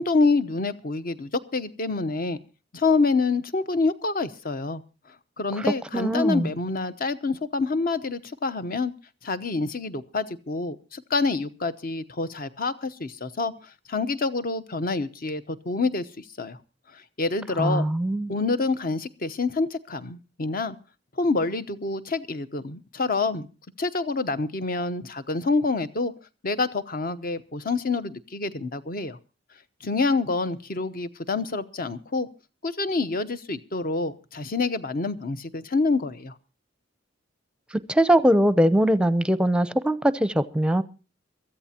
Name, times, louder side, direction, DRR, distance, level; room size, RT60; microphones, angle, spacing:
voice 1, 0.0-2.4 2.7-4.8 5.4-8.9 9.2-16.6 16.9-17.9 18.3-20.8 21.2-23.5 23.8-26.1 26.4-29.2 29.8-32.3 32.6-36.3, left 3 dB, 50° left, 13 dB, 0.9 m, -27 dB
voice 2, 5.9-6.5 17.6-18.3 37.9-40.8, right 1 dB, 5° right, 15 dB, 0.7 m, -21 dB
22.5 x 14.5 x 2.9 m, 0.33 s
head